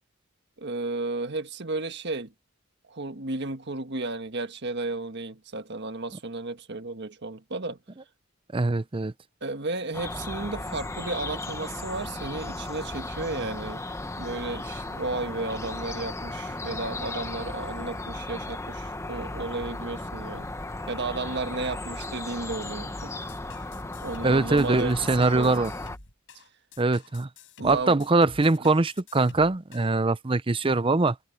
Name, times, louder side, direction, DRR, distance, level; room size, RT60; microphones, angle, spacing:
voice 1, 0.6-2.3 2.9-7.8 9.4-13.8 14.2-20.5 20.9-23.1 24.0-25.7 27.6-28.0 28.6-28.8, right 3 dB, 55° right, 1.6 m, -33 dB
voice 2, 8.5-9.1 24.2-25.7 26.8-27.3 27.6-31.2, right 3 dB, 25° right, 0.6 m, -22 dB
sound 1, 9.9-26.0, left 2 dB, 15° left, 1.0 m, -36 dB
sound 2, 23.3-29.9, left 3 dB, 65° left, 6.4 m, -49 dB
head